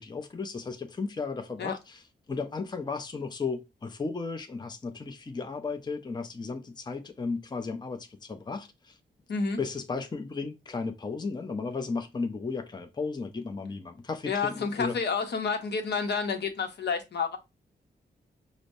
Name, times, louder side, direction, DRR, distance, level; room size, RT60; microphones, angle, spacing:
voice 1, 0.0-2.0 2.3-9.0 9.6-15.0, left 4 dB, 25° left, 0.6 m, -34 dB
voice 2, 14.2-17.4, left 5 dB, 65° left, 0.8 m, -29 dB
5.0 x 2.1 x 2.6 m
cardioid pair, 65°, 18 cm